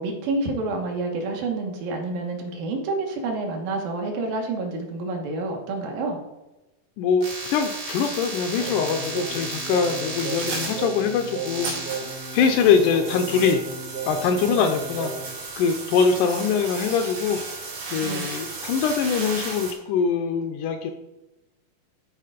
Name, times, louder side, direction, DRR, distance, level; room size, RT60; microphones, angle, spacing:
voice 1, 0.0-6.2 14.4-14.6 18.0-18.3, right 3 dB, 70° right, 1 dB, 2.9 m, -28 dB
voice 2, 7.0-11.7 12.3-13.6 14.1-17.4 17.9-20.9, left 6 dB, 80° left, 6 dB, 1.9 m, -23 dB
sound 1, 7.2-19.7, right 3 dB, 90° right, 4.5 m, -34 dB
Singing, 8.6-15.4, right 4 dB, 55° right, 1.7 m, -35 dB
12.5 x 4.5 x 4.9 m, 1.0 s
omnidirectional pair, 4.2 m